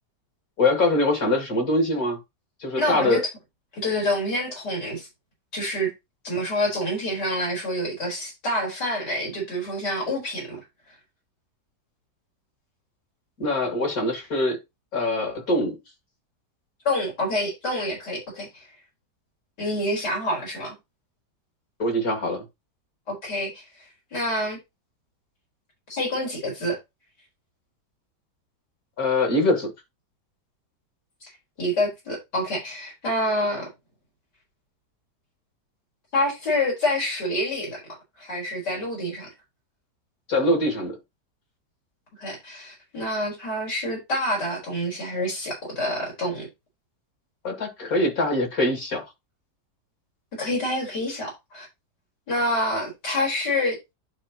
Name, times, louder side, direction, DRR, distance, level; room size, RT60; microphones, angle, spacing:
voice 1, 0.6-2.2 2.6-3.2 13.4-14.6 14.9-15.8 21.8-22.4 29.0-29.7 40.3-41.0 47.4-49.0, left 2 dB, 60° left, 2.6 m, -23 dB
voice 2, 2.8-3.2 3.7-5.1 5.5-5.9 6.2-10.6 16.8-18.7 19.6-20.7 23.1-23.6 24.1-24.6 25.9-26.8 31.2-31.3 31.6-33.7 36.1-37.8 38.2-39.3 42.2-46.5 50.4-51.7 52.3-53.8, left 1 dB, 85° left, 4.9 m, -27 dB
11.0 x 4.6 x 3.0 m
omnidirectional pair, 1.8 m